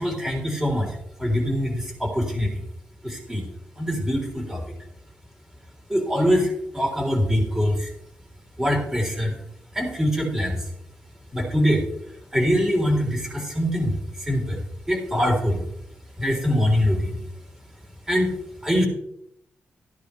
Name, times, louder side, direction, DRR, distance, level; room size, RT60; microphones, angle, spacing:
voice 1, 0.0-2.5 3.0-3.4 3.8-4.6 5.9-7.9 8.6-9.3 9.7-10.6 11.3-11.8 12.3-15.6 16.2-17.2 18.1-18.3 18.6-18.9, equal, 15° right, -1 dB, 3.6 m, -23 dB
14.0 x 10.0 x 3.2 m, 0.77 s
wide cardioid pair, 140°, 4 cm